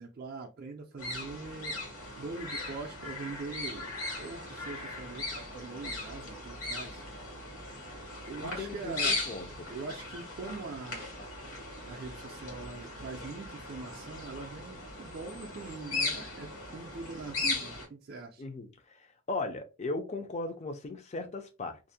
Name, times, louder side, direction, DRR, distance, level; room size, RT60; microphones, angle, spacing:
voice 1, 0.0-1.8 2.2-7.3 8.3-9.2 9.7-11.1 11.8-18.4, right 4 dB, 40° right, 0.3 m, -42 dB
sound 1, 1.0-17.9, left 3 dB, 70° left, 1.1 m, -38 dB
voice 2, 8.4-9.7 18.4-19.0 19.3-21.8, left 2 dB, 30° left, 0.4 m, -37 dB
2.5 x 2.0 x 2.6 m
head